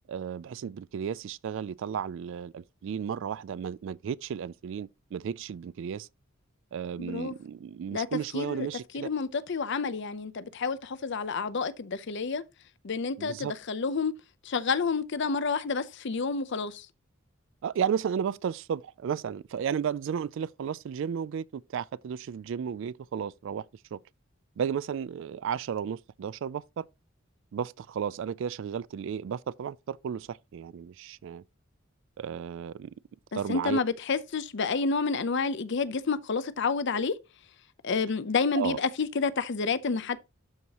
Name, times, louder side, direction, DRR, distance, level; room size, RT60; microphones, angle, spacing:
voice 1, 0.1-6.1 6.7-9.1 13.2-13.5 17.6-23.7 23.9-24.0 24.6-26.9 27.5-31.4 32.2-32.9 33.3-33.8 38.5-38.8, right 7 dB, 65° right, 0.3 m, -33 dB
voice 2, 7.0-7.4 7.9-8.1 8.3-8.7 8.9-12.4 12.8-14.1 14.4-16.9 33.5-37.2 37.8-40.2, left 4 dB, 60° left, 0.6 m, -29 dB
12.0 x 4.7 x 2.9 m
head